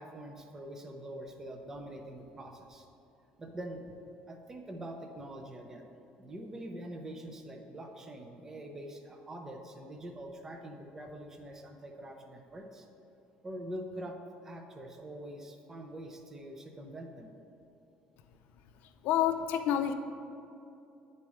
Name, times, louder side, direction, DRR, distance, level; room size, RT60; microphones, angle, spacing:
voice 1, 0.0-2.9 3.4-3.8 4.3-5.9 6.2-12.9 13.4-14.2 14.4-17.3, right 1 dB, 15° right, 4 dB, 0.5 m, -44 dB
voice 2, 19.0-19.9, left 10 dB, 70° left, 7 dB, 0.5 m, -28 dB
9.8 x 4.1 x 4.8 m, 2.8 s
cardioid pair, 170°, 3 cm